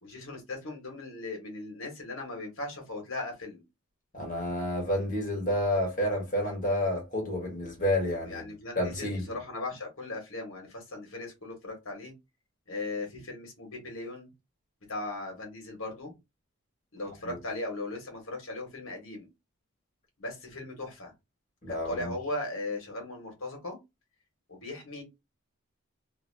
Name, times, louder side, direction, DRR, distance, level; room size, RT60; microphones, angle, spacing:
voice 1, 0.0-3.6 8.3-12.1 12.7-14.3 14.9-16.1 16.9-19.3 20.2-21.1 21.7-23.8 24.5-25.0, left 2 dB, 70° left, 1.3 m, -38 dB
voice 2, 4.1-8.5 8.7-9.3 17.2-17.4 21.6-22.1, left 1 dB, 40° left, 1.2 m, -30 dB
2.7 x 2.6 x 2.6 m
head